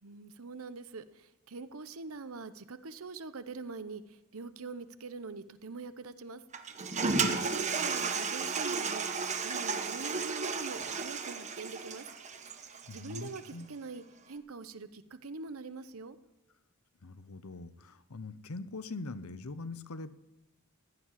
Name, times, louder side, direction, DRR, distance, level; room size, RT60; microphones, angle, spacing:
voice 1, 0.0-6.4 7.1-9.0 9.4-12.0 12.9-16.2, right 4 dB, 70° right, 13 dB, 0.9 m, -44 dB
Toilet flush, 6.5-13.5, right 4 dB, 35° right, 1.1 m, -33 dB
voice 2, 12.9-13.7 17.0-20.1, left 3 dB, 75° left, 14 dB, 0.8 m, -42 dB
16.0 x 7.5 x 9.9 m, 1.1 s
head